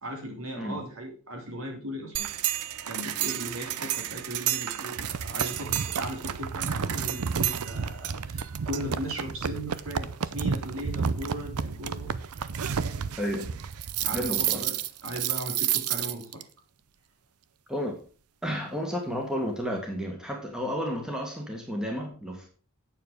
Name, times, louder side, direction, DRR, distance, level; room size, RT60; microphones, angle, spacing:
voice 1, 0.0-2.3 2.8-12.1 14.0-14.8 15.0-16.4, right 1 dB, 65° right, 1 dB, 3.2 m, -37 dB
sound 1, 2.1-16.4, right 8 dB, 85° right, 0.6 m, -30 dB
voice 2, 13.2-13.6 14.1-14.6 17.7-18.0 18.4-22.5, equal, 5° right, 1 dB, 1.8 m, -32 dB
9.0 x 7.0 x 5.0 m, 0.38 s
head